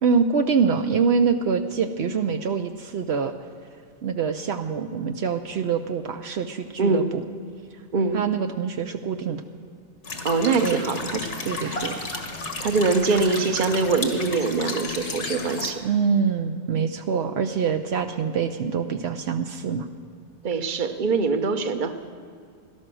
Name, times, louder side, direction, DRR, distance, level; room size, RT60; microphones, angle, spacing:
voice 1, 0.0-3.3 4.0-7.2 8.1-9.4 10.6-10.8 11.4-12.0 15.8-19.9, right 6 dB, 75° right, 6 dB, 0.9 m, -25 dB
sound 1, 10.0-15.7, left 3 dB, 90° left, 1.9 m, -32 dB
voice 2, 10.2-11.3 11.5-11.8 12.6-15.8 20.4-21.9, right 4 dB, 50° right, 8 dB, 1.0 m, -23 dB
17.5 x 12.5 x 6.2 m, 2.2 s
omnidirectional pair, 1.1 m